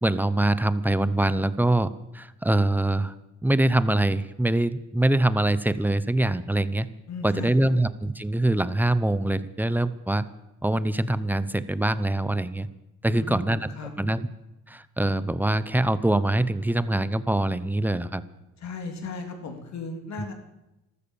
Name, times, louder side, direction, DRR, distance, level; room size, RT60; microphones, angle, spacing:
voice 1, 0.0-3.1 3.4-6.9 7.2-10.2 10.6-12.7 13.0-13.7 14.0-14.3 14.7-18.2, right 1 dB, 5° right, 15 dB, 0.8 m, -24 dB
voice 2, 7.1-7.7 13.0-13.9 18.6-20.3, left 3 dB, 65° left, 4 dB, 3.2 m, -36 dB
13.5 x 13.5 x 7.2 m, 0.95 s
cardioid pair, 90°, 30 cm